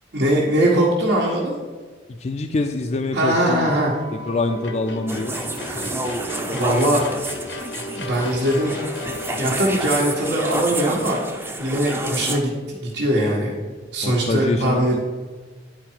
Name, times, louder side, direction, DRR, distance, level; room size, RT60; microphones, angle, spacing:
voice 1, 0.1-1.5 3.1-3.9 5.7-5.9 6.3-7.0 8.0-8.7 9.3-11.2 11.6-13.5 13.9-15.0, right 1 dB, 70° right, -5 dB, 1.4 m, -21 dB
voice 2, 2.1-3.7 4.1-5.3 14.0-15.0, left 2 dB, 40° left, 5 dB, 0.4 m, -25 dB
sound 1, 3.3-12.6, left 1 dB, 80° left, 0.8 m, -35 dB
sound 2, 5.1-12.4, right 2 dB, 15° right, 0.6 m, -29 dB
10.0 x 4.6 x 4.5 m, 1.4 s
head